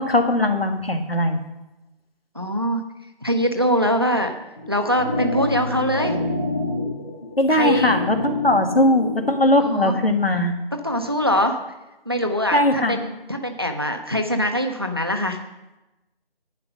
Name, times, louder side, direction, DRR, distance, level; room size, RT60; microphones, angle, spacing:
voice 1, 0.0-1.4 7.4-10.5 12.5-13.0, left 1 dB, 75° left, 6 dB, 2.1 m, -19 dB
voice 2, 2.3-2.8 3.2-4.3 4.7-6.2 7.5-7.9 9.6-9.9 10.7-11.6 12.1-15.4, equal, 25° right, 6 dB, 0.7 m, -23 dB
sound 1, 4.6-9.5, left 2 dB, 20° left, 1.3 m, -28 dB
10.5 x 9.9 x 5.4 m, 1.0 s
figure-of-eight pair, 165°, 30 cm